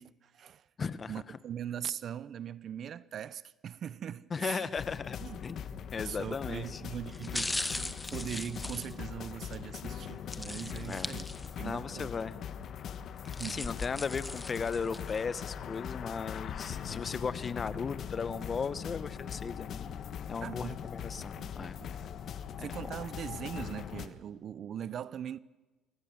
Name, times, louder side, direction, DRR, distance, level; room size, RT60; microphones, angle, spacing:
voice 1, 0.0-0.6 1.1-4.7 5.2-5.4 6.0-11.3 11.6-12.1 13.4-13.7 20.4-20.8 21.1-22.0 22.6-25.4, right 9 dB, 55° right, 0.6 m, -41 dB
voice 2, 0.8-1.2 4.3-5.7 5.9-6.8 10.8-11.1 11.6-12.4 13.5-19.9 20.3-21.8 22.6-23.0, left 5 dB, 35° left, 1.1 m, -36 dB
sound 1, 4.8-24.1, left 8 dB, 60° left, 1.4 m, -41 dB
sound 2, 6.1-6.4 7.1-9.6 10.3-11.8 12.1-12.2 13.0-15.2 15.7-15.8, left 2 dB, 15° left, 1.2 m, -39 dB
24.5 x 17.0 x 7.2 m
supercardioid pair, 85°, 0 cm